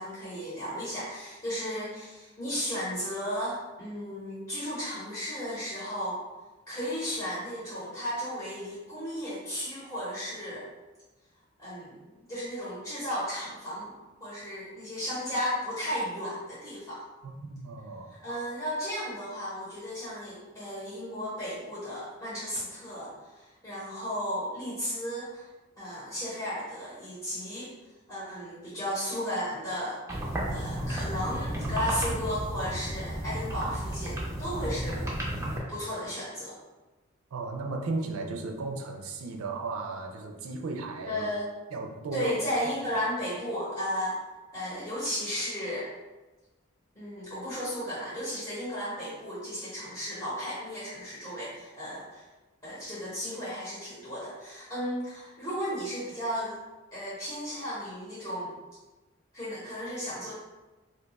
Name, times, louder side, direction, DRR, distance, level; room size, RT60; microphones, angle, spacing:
voice 1, 0.0-6.2 6.7-10.7 11.6-13.9 14.2-17.0 18.2-25.5 25.8-27.7 28.1-30.0 30.5-36.5 41.1-41.5 42.1-44.2 44.5-45.9 46.9-52.2 52.6-56.6 56.9-58.5 59.3-60.3, equal, 15° left, -9 dB, 0.8 m, -34 dB
voice 2, 17.2-18.2 37.3-41.2 41.7-42.4, right 3 dB, 85° right, 3 dB, 0.4 m, -35 dB
sound 1, 30.1-35.6, right 1 dB, 15° right, 0.5 m, -33 dB
2.7 x 2.2 x 4.0 m, 1.1 s
head